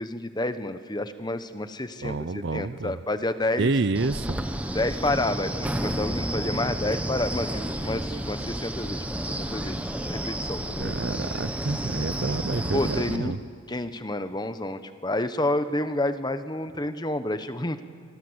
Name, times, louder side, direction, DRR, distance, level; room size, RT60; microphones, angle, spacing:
voice 1, 0.0-3.7 4.7-11.0 12.7-13.3 13.7-17.8, left 1 dB, 20° left, 10 dB, 1.0 m, -29 dB
voice 2, 2.0-3.0 3.6-4.4 10.8-13.4, right 3 dB, 55° right, 16 dB, 0.6 m, -28 dB
Wind, 3.9-13.2, right 1 dB, 5° right, 1.0 m, -31 dB
25.0 x 25.0 x 8.0 m, 2.1 s
head